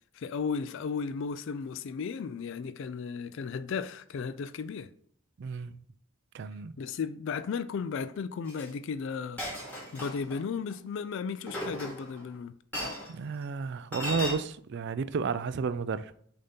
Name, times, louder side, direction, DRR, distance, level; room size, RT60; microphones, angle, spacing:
voice 1, 0.1-4.9 6.8-9.4 9.9-12.5, left 5 dB, 55° left, 0.3 m, -35 dB
voice 2, 5.4-5.8 6.3-6.7 13.1-16.1, right 5 dB, 50° right, 0.3 m, -32 dB
Chink clink, 8.5-8.7 9.4-10.4 11.5-12.2 12.7-13.1 13.9-14.3, left 1 dB, 10° left, 1.7 m, -36 dB
6.8 x 2.8 x 5.1 m
head